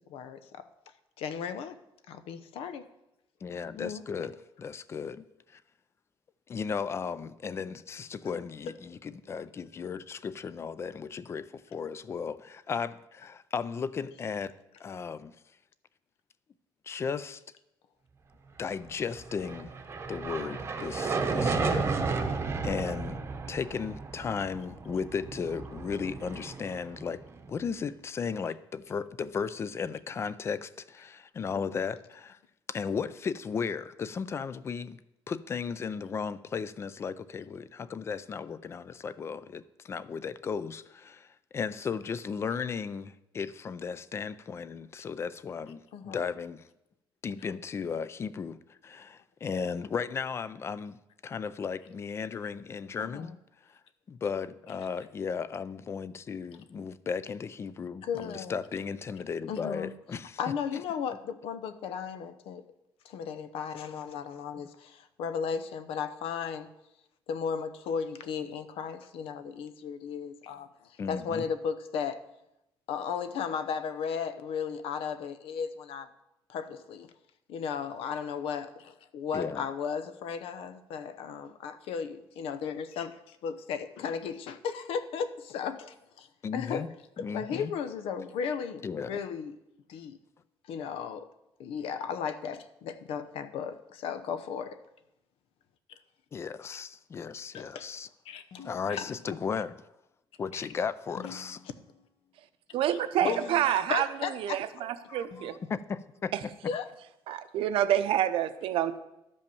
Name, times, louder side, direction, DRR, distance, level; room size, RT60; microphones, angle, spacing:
voice 1, 0.1-0.7 1.2-1.8 2.1-2.8 3.8-4.3 20.4-20.6 21.5-21.9 31.5-31.8 45.9-46.3 53.0-53.3 58.0-58.5 59.5-59.9 60.4-62.6 63.0-66.7 67.3-72.2 72.9-76.1 76.5-77.1 77.5-86.3 86.5-86.9 87.2-89.6 89.9-90.2 90.7-91.3 91.6-94.8 95.9-96.0 97.5-97.9 98.2-98.4 98.9-99.4 100.5-100.6 102.9-103.0 103.2-104.6 106.7-106.9, left 6 dB, 90° left, 0.8 m, -35 dB
voice 2, 3.4-5.6 6.5-14.5 14.8-15.4 16.8-17.4 18.6-19.7 20.1-22.3 22.6-23.2 23.5-27.2 27.5-32.4 32.7-35.0 35.3-46.7 47.2-51.0 51.2-53.3 53.7-53.8 54.1-60.4 71.0-71.4 79.3-79.7 86.4-86.9 87.2-87.7 88.8-89.2 96.3-98.1 98.6-99.8 100.4-101.6 105.1-106.3, left 6 dB, 30° left, 0.4 m, -35 dB
sound 1, 19.2-27.6, right 4 dB, 25° right, 0.8 m, -33 dB
sound 2, 98.5-99.7 101.2-102.3 103.2-104.1 105.3-106.3, left 7 dB, 65° left, 1.5 m, -49 dB
voice 3, 102.7-104.1 104.4-105.6 106.3-106.4 107.3-109.0, right 11 dB, 75° right, 0.7 m, -28 dB
12.0 x 5.4 x 7.0 m
cardioid pair, 170°, 9 cm